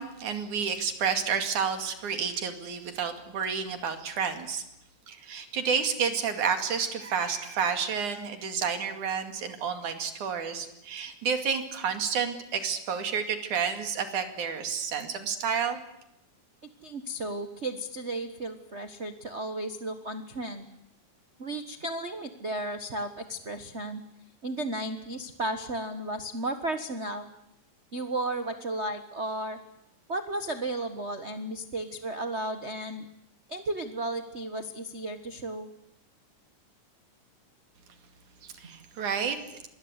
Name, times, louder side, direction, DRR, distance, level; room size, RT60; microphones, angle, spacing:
voice 1, 0.0-4.6 5.1-15.8 38.4-39.4, right 6 dB, 75° right, 7 dB, 3.8 m, -30 dB
voice 2, 16.6-20.7 21.4-24.0 24.4-27.3 27.9-29.6 30.1-33.1 33.5-35.7, right 1 dB, 40° right, 8 dB, 0.9 m, -34 dB
25.5 x 21.0 x 8.1 m, 0.82 s
omnidirectional pair, 3.5 m